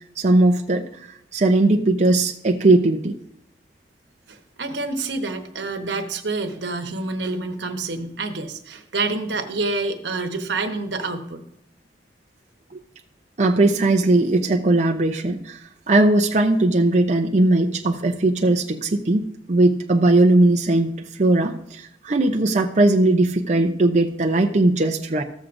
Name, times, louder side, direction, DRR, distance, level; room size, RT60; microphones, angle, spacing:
voice 1, 0.2-1.1 1.3-3.1 13.4-15.6 15.9-19.2 19.5-25.2, right 2 dB, 40° right, 3 dB, 0.6 m, -18 dB
voice 2, 4.3-11.4, right 3 dB, 85° right, 6 dB, 1.1 m, -27 dB
14.0 x 7.3 x 2.6 m, 0.76 s
head